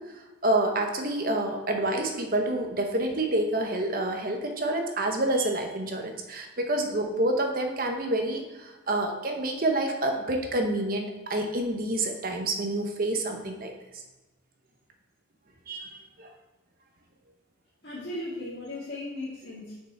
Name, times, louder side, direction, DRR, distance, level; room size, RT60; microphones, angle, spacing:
voice 1, 0.0-14.0 15.7-16.3, right 1 dB, 45° right, 3 dB, 0.9 m, -28 dB
voice 2, 17.8-19.8, left 1 dB, 55° left, -10 dB, 1.8 m, -37 dB
6.7 x 5.1 x 4.2 m, 1.1 s
head